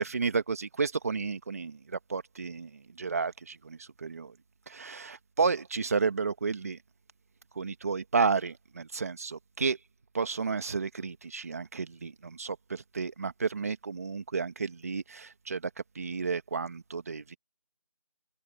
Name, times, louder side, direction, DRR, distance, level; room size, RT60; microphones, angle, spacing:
voice 1, 0.0-4.3 4.7-6.8 7.5-9.8 10.1-15.7 15.9-17.4, right 5 dB, 25° right, 1.7 m, -32 dB
figure-of-eight pair, 175°, 18 cm